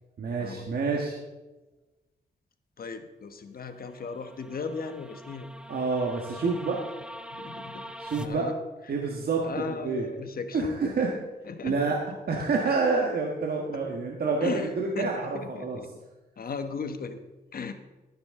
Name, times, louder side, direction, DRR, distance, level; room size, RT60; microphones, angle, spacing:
voice 1, 0.2-1.2 5.7-6.8 8.0-8.5 8.9-10.1 10.5-11.1 11.6-12.0 12.3-15.8, right 4 dB, 65° right, 0 dB, 1.6 m, -28 dB
voice 2, 2.8-5.5 7.3-7.9 8.2-8.5 9.4-10.9 11.4-11.8 13.7-13.8 14.4-14.7 15.0-15.9 16.4-17.2 17.5-17.7, left 5 dB, 60° left, 8 dB, 1.2 m, -36 dB
sound 1, 3.8-8.3, equal, 5° right, 0.8 m, -43 dB
13.0 x 11.5 x 3.7 m, 1.1 s
cardioid pair, 85°, 17 cm